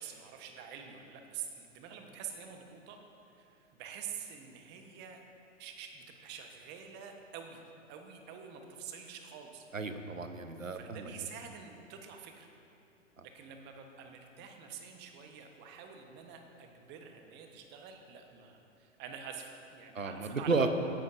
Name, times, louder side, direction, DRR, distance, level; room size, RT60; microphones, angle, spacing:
voice 1, 0.0-3.0 3.3-5.2 5.6-7.6 7.9-9.7 10.6-12.5 13.2-20.7, right 7 dB, 25° right, 4 dB, 1.1 m, -47 dB
voice 2, 9.7-11.1 13.2-13.3 19.9-20.7, right 4 dB, 90° right, 8 dB, 0.9 m, -33 dB
16.5 x 10.5 x 2.6 m, 2.6 s
figure-of-eight pair, 105°, 38 cm